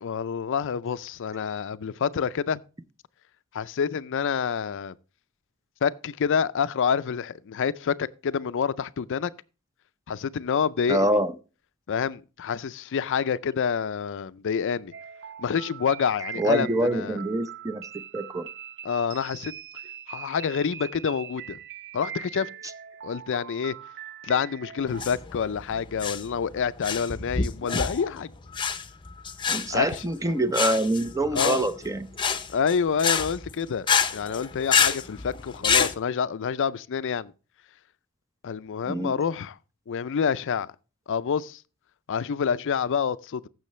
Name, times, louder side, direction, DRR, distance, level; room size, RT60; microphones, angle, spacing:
voice 1, 0.0-2.6 3.5-4.9 5.8-9.3 10.1-11.2 11.9-14.9 15.4-17.2 18.8-19.5 20.1-21.6 21.9-22.5 23.0-23.7 24.2-28.3 29.7-30.0 31.3-31.7 32.5-33.9 34.1-37.3 38.4-39.6 39.9-40.7 41.1-41.6 42.1-43.5, left 6 dB, 60° left, 0.4 m, -27 dB
voice 2, 10.9-11.3 16.4-17.8 18.1-18.5 29.5-32.1 38.9-39.2, right 1 dB, 15° right, 0.6 m, -25 dB
sound 1, 14.9-25.1, right 9 dB, 55° right, 0.6 m, -42 dB
sound 2, 24.9-35.9, left 6 dB, 20° left, 0.7 m, -27 dB
15.0 x 6.4 x 3.1 m
head